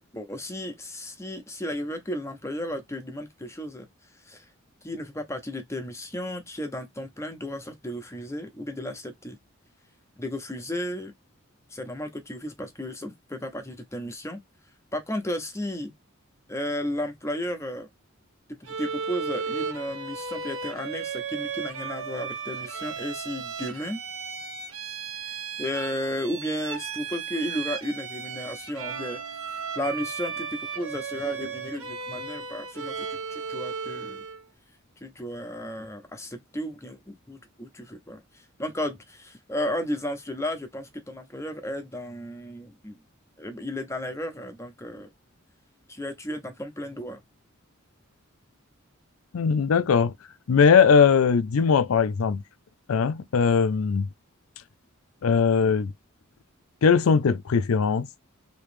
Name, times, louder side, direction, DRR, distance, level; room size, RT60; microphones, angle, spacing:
voice 1, 0.0-4.5 4.8-9.4 10.2-11.1 11.7-14.4 14.9-15.9 16.5-17.9 18.6-24.0 25.2-34.2 35.0-43.0 43.4-45.1 45.9-47.2, left 1 dB, 15° left, 0.9 m, -34 dB
Bowed string instrument, 18.7-34.4, right 6 dB, 80° right, 1.0 m, -35 dB
voice 2, 49.3-50.1 50.5-52.4 52.9-54.1 55.2-55.9 56.8-58.1, left 6 dB, 80° left, 0.4 m, -20 dB
3.2 x 2.9 x 3.2 m
head